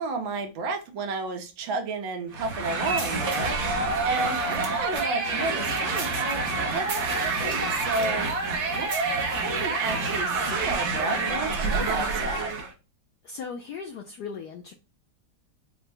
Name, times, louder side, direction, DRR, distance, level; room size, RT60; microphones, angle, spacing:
voice 1, 0.0-8.3 8.7-12.5, right 3 dB, 70° right, 5 dB, 1.5 m, -32 dB
sound 1, 2.3-12.7, right 3 dB, 50° right, 0.8 m, -27 dB
voice 2, 13.2-14.7, left 5 dB, 85° left, 3 dB, 0.9 m, -37 dB
4.8 x 2.1 x 3.3 m, 0.31 s
omnidirectional pair, 2.3 m